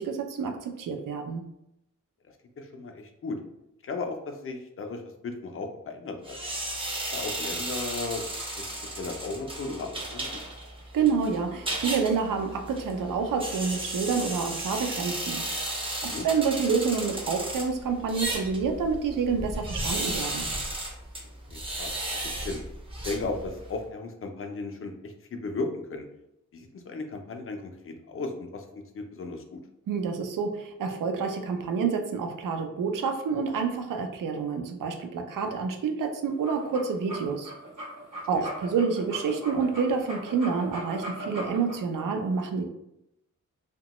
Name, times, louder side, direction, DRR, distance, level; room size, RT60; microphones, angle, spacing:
voice 1, 0.0-1.4 10.9-15.4 16.0-20.5 29.9-37.5 38.3-42.7, right 5 dB, 85° right, 5 dB, 0.5 m, -28 dB
voice 2, 2.6-3.4 3.8-6.4 7.1-8.2 8.5-10.4 16.0-16.3 21.2-22.6 23.0-26.0 26.5-29.6 35.4-35.5 38.3-38.5, left 3 dB, 45° left, 4 dB, 0.4 m, -36 dB
sound 1, 6.2-23.8, right 1 dB, 15° right, 0.5 m, -34 dB
sound 2, 36.3-41.8, right 1 dB, 70° right, 0.9 m, -39 dB
2.8 x 2.1 x 2.9 m, 0.83 s
wide cardioid pair, 160°, 32 cm